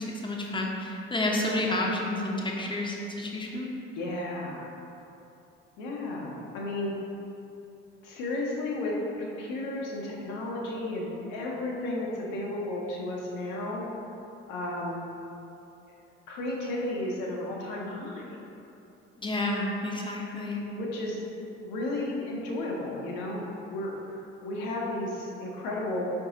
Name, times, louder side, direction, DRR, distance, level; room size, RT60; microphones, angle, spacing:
voice 1, 0.0-3.7 19.2-20.7, left 1 dB, 15° left, -1 dB, 0.7 m, -30 dB
voice 2, 3.9-4.7 5.8-6.9 8.0-13.8 14.5-15.0 16.3-18.2 20.7-21.2 21.6-26.0, left 1 dB, 65° left, -3 dB, 0.9 m, -33 dB
4.7 x 2.7 x 3.8 m, 2.9 s
figure-of-eight pair, 50°, 35 cm